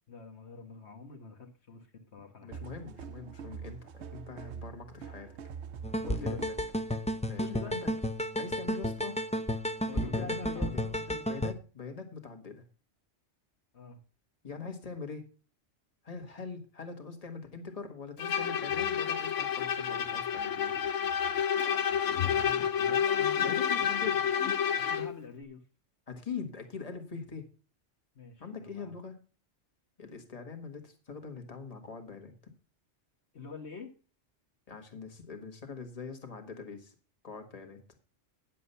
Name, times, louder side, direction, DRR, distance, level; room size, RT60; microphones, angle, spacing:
voice 1, 0.1-2.7 6.0-6.4 7.4-7.8 9.8-11.4 13.7-14.0 22.2-23.0 24.8-25.6 28.1-28.9 33.3-33.9, left 4 dB, 65° left, 4 dB, 1.6 m, -45 dB
voice 2, 2.4-5.3 6.1-6.6 7.3-7.9 8.4-9.2 9.9-10.8 11.3-12.6 14.4-15.3 16.0-20.8 23.4-24.2 26.1-27.5 28.4-29.2 30.0-32.3 34.7-36.9 37.2-37.8, left 5 dB, 30° left, 5 dB, 1.7 m, -43 dB
sound 1, 2.5-6.7, right 7 dB, 70° right, 1.0 m, -44 dB
sound 2, 5.8-11.5, equal, 10° left, 0.5 m, -32 dB
Bowed string instrument, 18.2-25.1, left 8 dB, 80° left, 1.1 m, -29 dB
9.7 x 7.4 x 5.5 m, 0.37 s
omnidirectional pair, 1.2 m